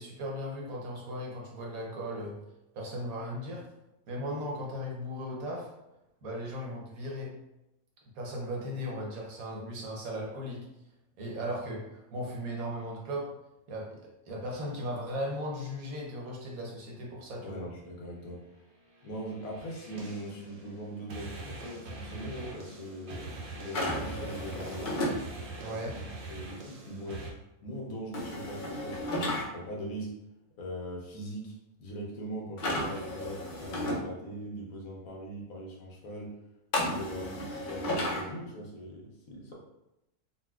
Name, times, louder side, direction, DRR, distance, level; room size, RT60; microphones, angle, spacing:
voice 1, 0.0-2.4 2.7-3.7 4.1-5.7 6.2-7.3 8.1-10.7 11.2-13.3 13.7-14.0 14.3-17.6 25.6-25.9, equal, 85° right, -2 dB, 1.3 m, -37 dB
voice 2, 17.4-18.4 19.0-25.0 25.7-26.0 26.3-27.2 27.6-30.1 30.6-31.5 31.8-36.3 36.8-39.5, right 1 dB, 75° left, -2 dB, 1.2 m, -41 dB
sound 1, 18.9-27.3, right 2 dB, 60° right, 0.8 m, -43 dB
sound 2, 23.7-25.2 28.1-29.4 32.6-34.0 36.7-38.2, left 1 dB, 50° left, 0.6 m, -33 dB
4.0 x 2.3 x 2.3 m, 0.90 s
omnidirectional pair, 1.5 m